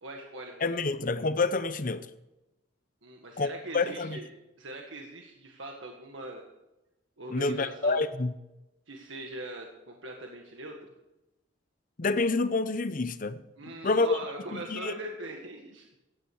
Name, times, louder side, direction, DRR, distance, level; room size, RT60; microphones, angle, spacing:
voice 1, 0.0-0.8 3.0-4.3 4.6-6.4 7.2-8.0 8.9-10.9 13.6-15.9, right 1 dB, 80° right, 1.7 m, -41 dB
voice 2, 0.6-2.1 3.4-4.2 7.3-8.3 12.0-14.2 14.5-14.9, left 3 dB, 45° left, 0.7 m, -28 dB
16.0 x 9.9 x 4.8 m
head